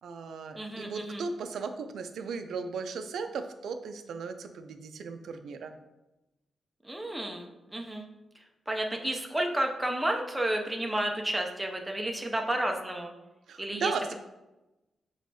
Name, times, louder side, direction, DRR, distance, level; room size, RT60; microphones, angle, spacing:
voice 1, 0.0-5.7 13.5-14.1, right 5 dB, 85° right, 8 dB, 0.4 m, -36 dB
voice 2, 0.6-1.2 6.8-8.1 8.7-13.1 13.6-13.9, right 1 dB, 5° right, 2 dB, 0.4 m, -31 dB
6.1 x 3.1 x 2.7 m, 1.0 s
wide cardioid pair, 165°, 0 cm